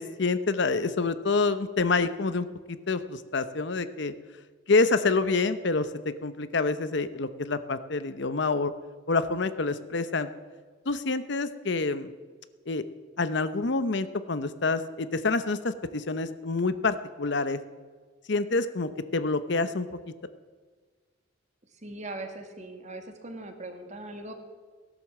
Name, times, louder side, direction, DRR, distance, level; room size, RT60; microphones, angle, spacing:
voice 1, 0.0-4.1 4.7-8.7 9.1-10.3 10.9-12.1 12.7-12.8 13.2-17.6 18.3-19.9, left 3 dB, 60° left, 12 dB, 0.8 m, -27 dB
voice 2, 21.7-24.3, right 2 dB, 35° right, 6 dB, 1.9 m, -40 dB
17.0 x 11.5 x 7.4 m, 1.5 s
head